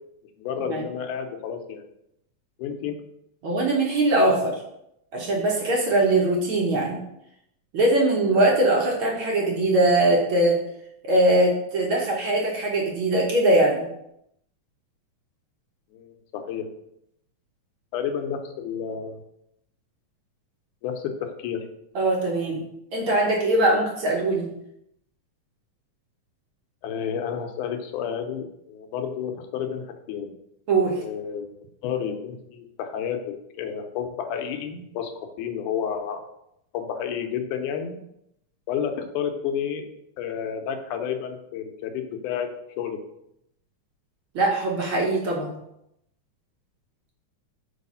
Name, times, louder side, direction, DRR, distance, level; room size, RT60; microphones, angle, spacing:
voice 1, 0.4-1.8 2.6-3.0 15.9-16.7 17.9-19.2 20.8-21.7 26.8-30.3 31.0-31.5 31.8-35.1 35.4-36.2 36.7-38.0 38.7-39.9 40.2-42.5 42.8-43.0, left 8 dB, 80° left, 5 dB, 2.2 m, -30 dB
voice 2, 3.4-4.6 5.1-7.0 7.7-10.6 11.0-13.8 21.9-22.6 22.9-24.5 30.7-30.9 44.3-45.6, right 2 dB, 70° right, -2 dB, 1.2 m, -21 dB
4.9 x 4.6 x 5.4 m, 0.79 s
omnidirectional pair, 3.7 m